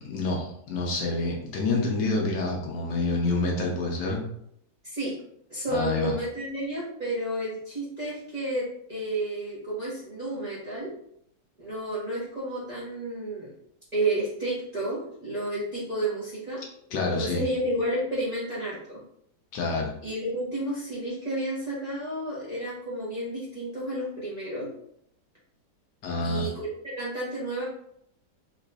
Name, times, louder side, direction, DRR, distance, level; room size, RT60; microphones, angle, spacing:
voice 1, 0.1-4.2 5.7-6.1 16.9-17.4 19.5-19.9 26.0-26.5, left 3 dB, 70° left, -1 dB, 1.3 m, -27 dB
voice 2, 4.8-5.1 5.5-10.9 11.6-13.5 13.9-16.6 17.1-19.0 20.0-24.7 26.2-26.7 27.0-27.6, right 1 dB, 25° right, -9 dB, 1.1 m, -31 dB
4.0 x 2.9 x 2.3 m, 0.71 s
omnidirectional pair, 2.0 m